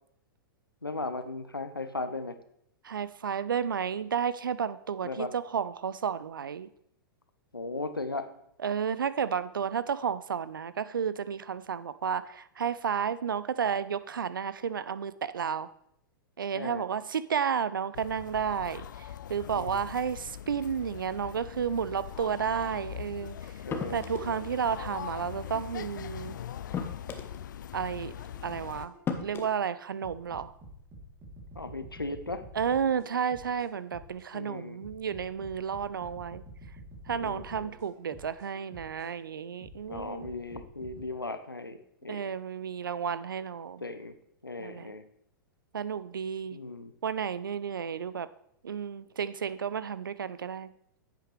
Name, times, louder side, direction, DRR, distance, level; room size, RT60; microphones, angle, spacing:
voice 1, 0.8-2.4 5.0-5.3 7.5-8.3 16.5-16.8 19.5-19.8 23.6-24.4 31.5-32.5 34.3-34.8 37.1-37.7 39.8-42.3 43.8-44.1 44.4-45.0 46.5-46.9, left 2 dB, 90° left, 10 dB, 0.8 m, -37 dB
voice 2, 2.8-6.7 8.6-15.7 16.4-23.5 23.9-26.4 27.7-28.1 28.4-30.5 32.5-36.4 37.1-40.3 42.1-43.8 44.6-44.9 45.7-46.6 47.0-48.3 48.6-50.7, right 7 dB, 70° right, 16 dB, 0.5 m, -32 dB
sound 1, 17.9-28.9, left 10 dB, 60° left, 0.4 m, -42 dB
sound 2, 23.7-24.3 25.8-25.9 26.7-27.4 28.4-28.5 29.1-29.5, left 6 dB, 20° left, 1.0 m, -34 dB
sound 3, 27.9-29.5 30.0-34.3 34.8-39.1 39.6-41.0, right 1 dB, 25° right, 3.1 m, -49 dB
10.0 x 8.3 x 3.3 m, 0.72 s
figure-of-eight pair, 105°, 11 cm